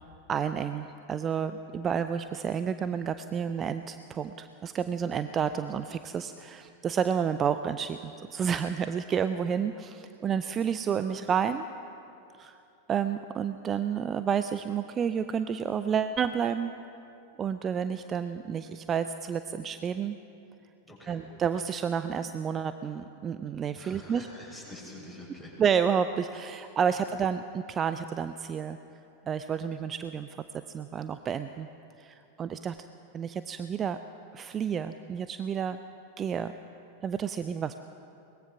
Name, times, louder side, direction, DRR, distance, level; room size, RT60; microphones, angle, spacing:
voice 1, 0.3-11.6 12.4-12.6 12.9-16.7 17.4-20.2 21.1-24.3 25.6-28.8 29.3-30.3 30.7-31.7 32.0-32.8 33.1-34.0 34.3-35.8 36.2-36.5 37.0-37.8, right 7 dB, 25° right, 11 dB, 0.6 m, -30 dB
voice 2, 20.8-21.2 23.7-25.5, left 1 dB, 10° right, -2 dB, 6.6 m, -46 dB
22.5 x 20.0 x 6.0 m, 2.7 s
figure-of-eight pair, 90°, 0 cm